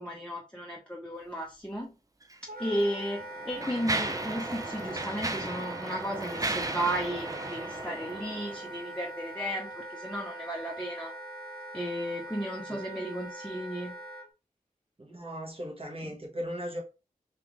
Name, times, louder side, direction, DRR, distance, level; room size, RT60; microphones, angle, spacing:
voice 1, 0.0-1.9 2.6-11.1 11.7-13.9 16.0-16.1, equal, 5° left, 0.7 m, -34 dB
Mechanisms, 2.2-2.4 3.1-8.8, right 2 dB, 25° right, 0.4 m, -35 dB
Wind instrument woodwind instrument, 2.5-14.3, right 2 dB, 90° right, 0.7 m, -42 dB
voice 2, 15.0-16.8, equal, 40° right, 1.2 m, -37 dB
3.5 x 2.5 x 3.0 m
wide cardioid pair, 50°, 15 cm